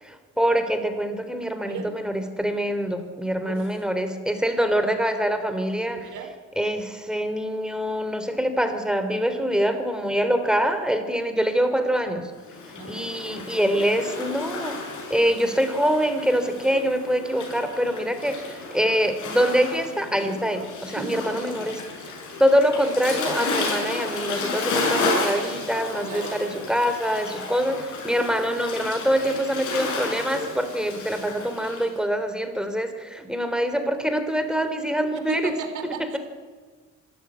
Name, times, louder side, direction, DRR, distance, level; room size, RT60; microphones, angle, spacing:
voice 1, 0.0-6.0 6.6-12.3 12.8-14.8 15.1-21.8 22.4-35.5, equal, ahead, 8 dB, 3.4 m, -24 dB
voice 2, 5.9-6.3 12.8-13.1 20.9-22.0 26.0-26.3 35.3-36.2, right 5 dB, 80° right, 7 dB, 4.0 m, -35 dB
Waves surf, 12.4-31.9, left 3 dB, 75° left, 6.7 m, -32 dB
24.5 x 13.5 x 9.8 m, 1.4 s
cardioid pair, 90°, 30 cm